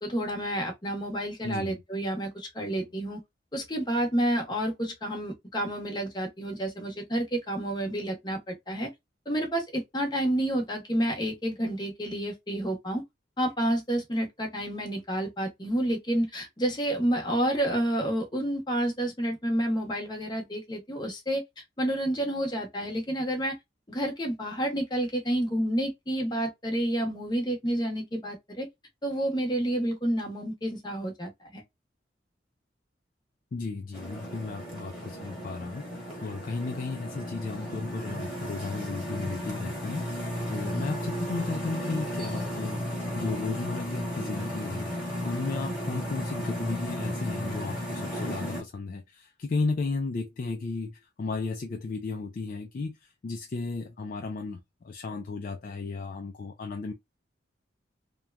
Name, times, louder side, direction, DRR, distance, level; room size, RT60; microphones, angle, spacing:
voice 1, 0.0-3.2 3.5-8.9 9.3-13.0 13.4-21.4 21.8-23.6 23.9-28.7 29.0-31.6, right 1 dB, 25° left, 0.8 m, -29 dB
voice 2, 1.4-1.7 33.5-44.9 45.2-56.9, left 3 dB, 45° left, 0.3 m, -34 dB
sound 1, 33.9-48.6, equal, ahead, 1.2 m, -34 dB
2.9 x 2.2 x 2.3 m
head